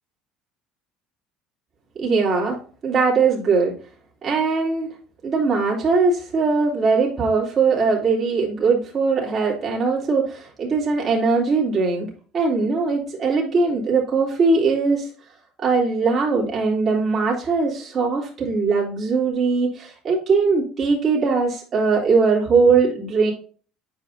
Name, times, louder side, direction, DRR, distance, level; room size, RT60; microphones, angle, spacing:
voice 1, 2.0-3.7 4.2-4.9 5.2-12.1 12.3-15.1 15.6-23.3, right 4 dB, 40° right, -3 dB, 3.1 m, -20 dB
9.0 x 5.0 x 2.7 m, 0.41 s
supercardioid pair, 105°, 0 cm